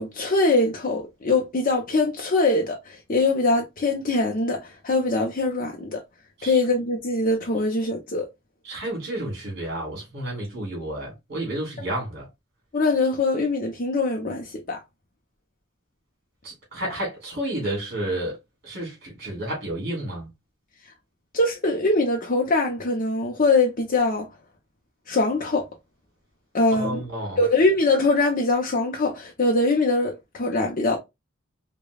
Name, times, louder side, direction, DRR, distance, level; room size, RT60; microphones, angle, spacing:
voice 1, 0.0-6.0 6.4-8.3 12.7-14.8 21.3-24.3 25.1-25.7 26.5-27.0 27.4-31.0, left 2 dB, 45° left, 0.7 m, -22 dB
voice 2, 8.6-12.3 16.4-18.4 18.6-20.3 26.8-27.4, right 1 dB, 55° right, 2.5 m, -31 dB
5.0 x 2.3 x 2.3 m
head